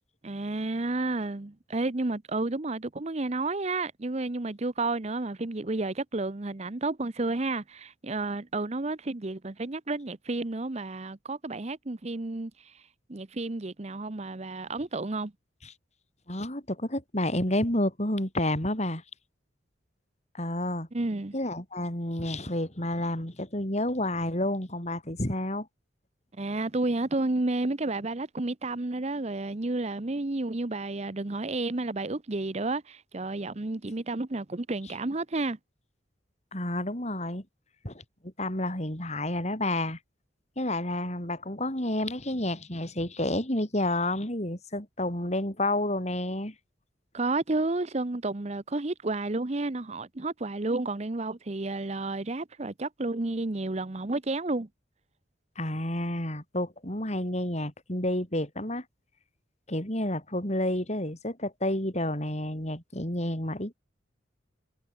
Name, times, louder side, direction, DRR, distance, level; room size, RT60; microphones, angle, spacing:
voice 1, 0.2-12.8 13.1-15.3 20.9-21.3 26.4-35.6 47.1-54.7, right 2 dB, 35° right, 0.8 m, -31 dB
voice 2, 16.3-19.0 20.3-20.9 21.3-25.7 36.5-37.5 37.8-40.0 40.6-46.5 55.6-58.8 59.7-63.7, left 1 dB, 35° left, 5.2 m, -30 dB
head